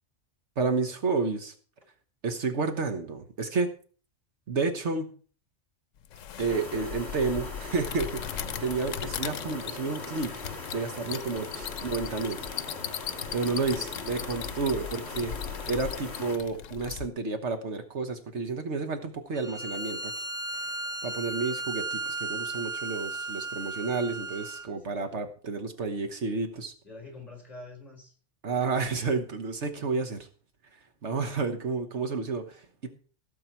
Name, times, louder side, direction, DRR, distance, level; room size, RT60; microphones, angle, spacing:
voice 1, 0.6-1.5 2.2-3.7 4.5-5.1 6.4-10.4 10.7-12.4 12.9-13.0 13.3-15.3 15.7-20.1 21.0-26.7 28.4-30.3 31.0-32.9, right 4 dB, 65° right, 7 dB, 1.5 m, -31 dB
sound 1, 6.0-17.1, left 9 dB, 85° left, 1.1 m, -38 dB
sound 2, 6.5-16.4, left 3 dB, 60° left, 2.6 m, -40 dB
voice 2, 13.5-14.3 24.2-25.2 26.8-28.1, left 2 dB, 30° left, 3 dB, 4.6 m, -48 dB
Bowed string instrument, 19.3-24.7, right 2 dB, 30° right, 1.0 m, -35 dB
16.5 x 7.7 x 4.6 m, 0.41 s
omnidirectional pair, 1.3 m